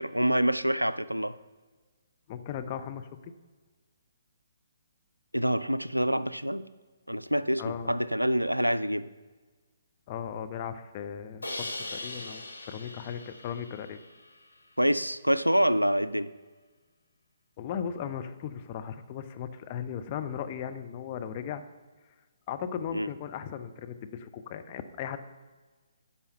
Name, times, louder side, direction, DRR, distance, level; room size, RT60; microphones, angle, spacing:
voice 1, 0.0-1.4 5.3-6.7 7.1-7.6 7.9-9.1 14.8-16.3 22.9-23.1, equal, 90° right, 0.4 m, -26 dB
voice 2, 2.3-3.3 7.6-7.9 10.1-14.0 17.6-21.6 22.5-25.2, left 8 dB, 30° left, 0.7 m, -37 dB
Crash cymbal, 11.4-14.5, left 2 dB, 75° left, 1.2 m, -40 dB
10.5 x 5.7 x 6.7 m
figure-of-eight pair, 130°, 0 cm